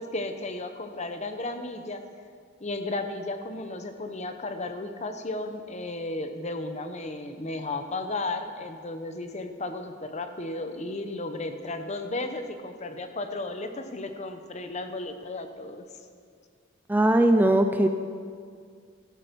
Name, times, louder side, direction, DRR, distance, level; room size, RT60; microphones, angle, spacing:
voice 1, 0.0-2.0 2.6-15.9, left 2 dB, 35° left, 7 dB, 0.9 m, -34 dB
voice 2, 16.9-17.9, right 1 dB, 10° right, 6 dB, 0.4 m, -20 dB
13.5 x 12.0 x 5.3 m, 2.1 s
head